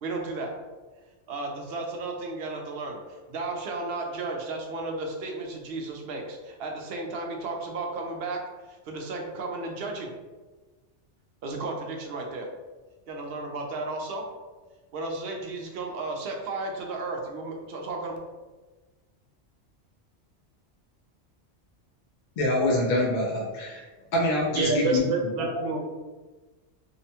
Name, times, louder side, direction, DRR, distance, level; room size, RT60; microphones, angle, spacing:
voice 1, 0.0-0.5 1.3-8.4 8.7-10.1 11.4-12.5 13.1-14.2 14.9-18.2, right 3 dB, 65° right, 1 dB, 0.7 m, -34 dB
voice 2, 22.4-23.8 24.1-25.3, left 1 dB, 60° left, -3 dB, 0.5 m, -25 dB
voice 3, 24.5-25.8, right 3 dB, 90° right, 1 dB, 0.9 m, -26 dB
2.7 x 2.1 x 2.7 m, 1.3 s
omnidirectional pair, 1.2 m